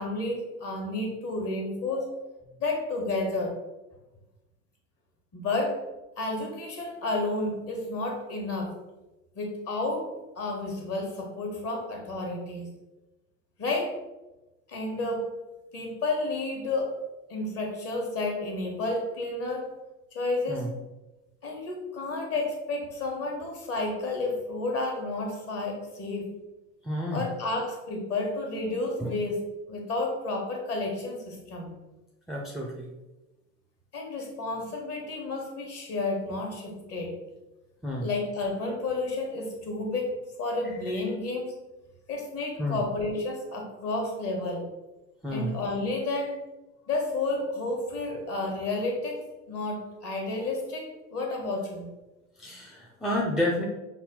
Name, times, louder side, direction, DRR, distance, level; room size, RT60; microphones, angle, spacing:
voice 1, 0.0-2.1 2.6-3.5 5.3-5.8 6.2-8.7 9.3-10.1 10.4-12.7 13.6-13.9 14.7-15.3 15.7-16.9 17.3-19.7 20.1-20.7 21.4-26.3 27.1-29.4 29.7-31.7 33.9-37.1 38.0-41.5 42.1-44.6 45.3-46.4 46.9-51.9, left 2 dB, 35° left, 1 dB, 1.3 m, -31 dB
voice 2, 26.8-27.3 29.0-29.1 32.3-32.9 37.8-38.1 42.6-42.8 45.2-45.5 52.4-53.6, left 1 dB, ahead, -3 dB, 0.5 m, -30 dB
5.5 x 2.2 x 3.6 m, 1.0 s
hypercardioid pair, 80°, 42 cm